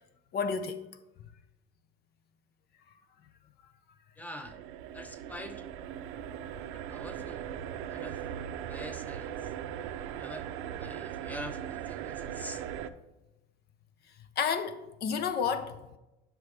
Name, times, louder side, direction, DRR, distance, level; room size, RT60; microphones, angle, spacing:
voice 1, 0.3-0.9 6.4-6.5 14.4-15.9, left 6 dB, 50° left, 0.7 m, -31 dB
voice 2, 4.2-4.6 4.9-5.6 6.7-7.4 7.9-8.2 8.7-9.5 10.2-10.5 10.8-12.6, equal, 10° left, 0.8 m, -45 dB
sound 1, 4.4-12.9, right 10 dB, 80° right, 0.6 m, -39 dB
10.0 x 6.1 x 3.3 m
cardioid pair, 120°, 21 cm